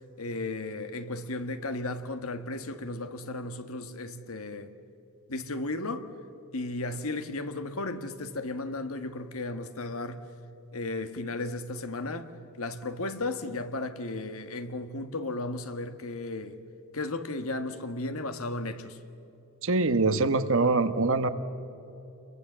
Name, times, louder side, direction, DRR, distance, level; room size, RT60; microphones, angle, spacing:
voice 1, 0.2-4.7 5.3-6.1 6.5-10.2 10.7-12.3 12.6-16.6 16.9-19.0, left 2 dB, 70° left, 1.5 m, -34 dB
voice 2, 19.6-21.3, right 3 dB, 60° right, 1.3 m, -24 dB
29.5 x 23.0 x 7.5 m
head